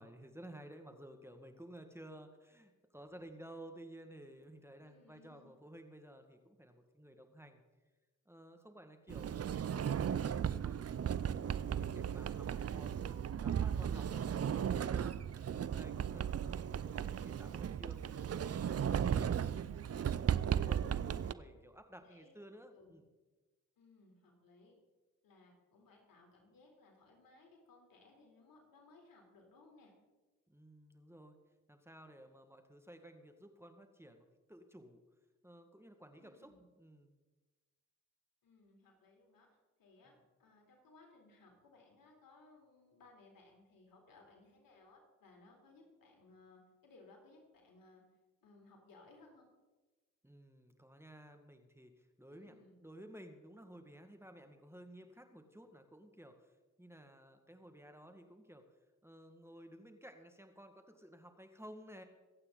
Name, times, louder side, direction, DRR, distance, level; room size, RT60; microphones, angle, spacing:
voice 1, 0.0-7.6 8.3-11.1 11.4-15.1 15.5-19.4 19.9-23.0 30.5-31.4 31.7-35.0 35.4-37.1 40.1-40.2 50.2-58.7 59.0-62.0, right 1 dB, 5° right, 6 dB, 1.9 m, -55 dB
voice 2, 4.8-5.5 21.2-21.5 21.9-22.3 22.7-23.0 23.8-24.7 25.2-29.9 36.1-36.7 38.4-40.1 40.4-48.0 48.4-49.5 52.3-52.8, left 3 dB, 70° left, 1 dB, 3.8 m, -63 dB
Sliding door, 9.1-21.3, right 8 dB, 45° right, 0.6 m, -36 dB
23.5 x 8.8 x 4.0 m, 1.2 s
supercardioid pair, 45°, 35 cm